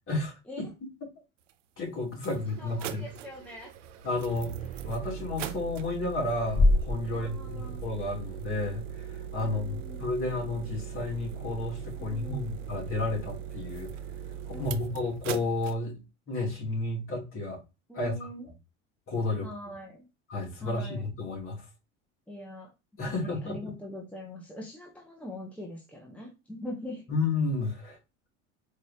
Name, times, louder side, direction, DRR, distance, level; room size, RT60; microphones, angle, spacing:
sound 1, 1.5-1.6 2.1-15.7, right 9 dB, 85° right, 0.6 m, -40 dB
voice 1, 1.8-3.1 4.0-4.5 4.8-13.9 14.5-16.0 16.3-17.6 17.9-18.2 19.1-19.5 20.3-21.6 23.0-23.7 27.1-28.0, left 2 dB, 35° left, 2.7 m, -32 dB
sound 2, 2.5-8.4, left 2 dB, 20° left, 2.0 m, -31 dB
voice 2, 2.6-3.7 7.1-7.8 9.4-10.1 12.0-12.5 14.5-15.0 17.9-18.5 19.4-20.1 20.6-21.1 22.3-22.7 23.0-27.0, left 1 dB, 5° left, 1.1 m, -43 dB
4.6 x 3.2 x 2.8 m
hypercardioid pair, 90°, 37 cm